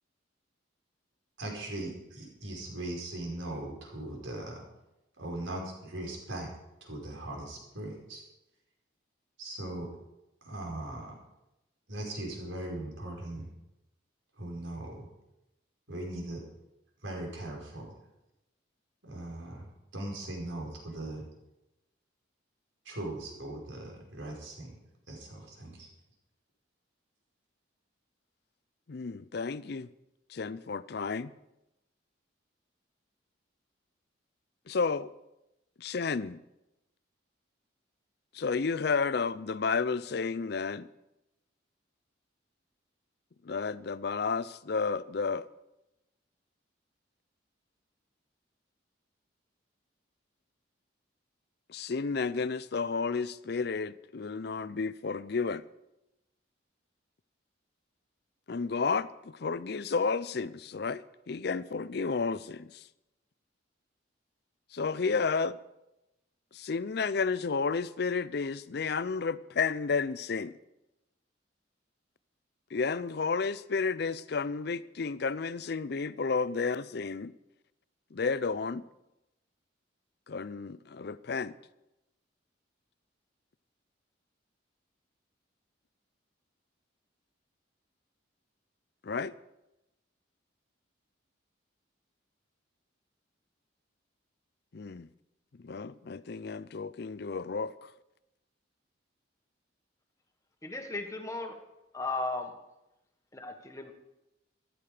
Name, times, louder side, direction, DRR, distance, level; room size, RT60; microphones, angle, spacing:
voice 1, 1.4-4.6 5.2-6.5 6.8-8.2 9.4-9.9 10.4-11.1 11.9-13.5 14.4-15.1 15.9-16.4 17.0-17.9 19.0-21.2 22.8-24.7 25.1-25.9, right 1 dB, 80° right, 4.9 m, -39 dB
voice 2, 28.9-29.9 30.3-31.3 34.7-35.1 35.8-36.4 38.3-40.9 43.5-45.5 51.7-55.6 58.5-62.7 64.7-65.6 66.5-70.5 72.7-77.3 78.1-78.8 80.3-81.5 89.0-89.3 94.7-95.1 95.6-97.7, left 4 dB, 55° left, 0.5 m, -32 dB
voice 3, 100.6-101.6 101.9-102.5 103.3-103.9, left 3 dB, 15° left, 1.3 m, -35 dB
14.5 x 12.5 x 5.0 m
head